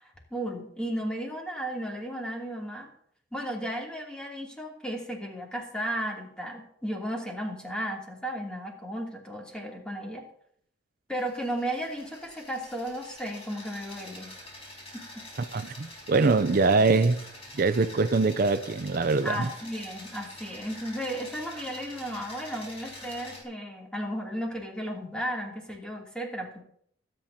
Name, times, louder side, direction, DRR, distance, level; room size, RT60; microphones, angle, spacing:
voice 1, 0.0-2.9 3.3-10.2 11.1-14.4 14.9-15.2 19.2-26.6, equal, 5° left, 2.8 m, -34 dB
sound 1, 11.2-23.4, left 1 dB, 35° left, 5.0 m, -46 dB
voice 2, 15.5-17.2 17.5-19.5, right 3 dB, 50° right, 0.5 m, -23 dB
23.0 x 9.1 x 2.8 m
head